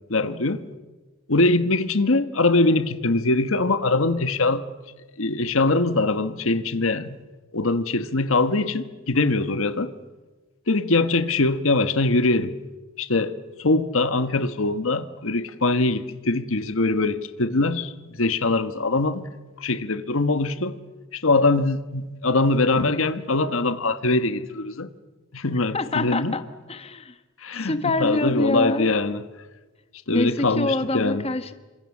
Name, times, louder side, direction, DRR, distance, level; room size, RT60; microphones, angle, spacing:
voice 1, 0.1-0.6 1.3-4.6 5.2-7.2 7.5-9.9 10.7-12.5 13.0-13.3 13.6-19.3 19.6-20.8 21.1-24.9 25.3-26.3 27.4-29.2 30.1-31.2, left 2 dB, 70° left, 1.3 m, -22 dB
voice 2, 25.7-26.4 26.7-27.1 27.6-28.9 30.1-31.5, left 2 dB, 30° left, 1.2 m, -25 dB
28.0 x 25.5 x 7.3 m
head